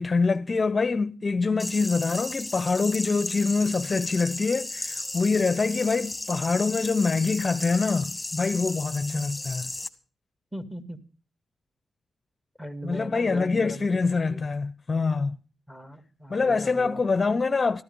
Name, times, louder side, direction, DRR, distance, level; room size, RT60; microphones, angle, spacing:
voice 1, 0.0-9.7 12.8-15.4 16.3-17.8, left 4 dB, 35° left, 0.7 m, -25 dB
sound 1, 1.6-9.9, left 2 dB, 10° left, 2.1 m, -35 dB
voice 2, 9.0-9.4 10.5-11.0 12.6-14.4 15.7-17.0, equal, 5° right, 2.1 m, -39 dB
14.0 x 13.5 x 5.4 m
cardioid pair, 95°, 0 cm